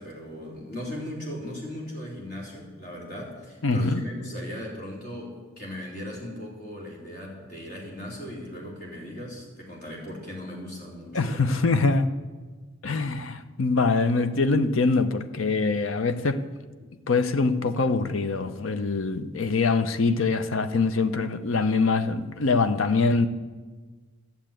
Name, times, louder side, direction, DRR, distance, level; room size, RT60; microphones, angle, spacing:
voice 1, 0.0-11.4 16.8-16.9, left 1 dB, 50° left, 3.8 m, -38 dB
voice 2, 3.6-4.0 11.1-12.1 12.8-16.4 17.1-23.3, left 3 dB, 80° left, 0.8 m, -24 dB
12.0 x 7.2 x 9.0 m
head